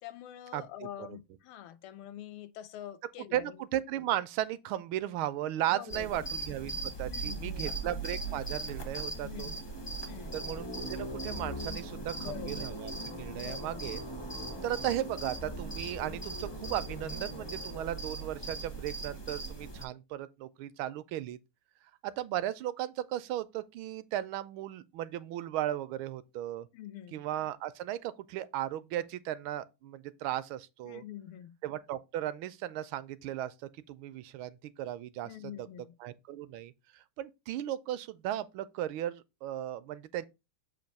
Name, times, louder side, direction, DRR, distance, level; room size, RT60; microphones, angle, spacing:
voice 1, 0.0-3.6 5.7-6.2 7.1-7.7 9.2-9.6 10.1-10.4 12.2-12.7 13.4-13.9 26.7-27.2 30.8-31.6 35.2-36.0, left 11 dB, 85° left, 1.5 m, -45 dB
voice 2, 3.3-9.5 10.3-14.0 14.6-21.4 22.0-26.7 27.1-31.0 31.6-33.5 33.9-35.3 35.6-35.7 36.0-40.3, right 12 dB, 80° right, 1.3 m, -36 dB
sound 1, 5.9-19.8, right 2 dB, 45° left, 0.3 m, -39 dB
7.5 x 2.6 x 5.2 m
omnidirectional pair, 2.3 m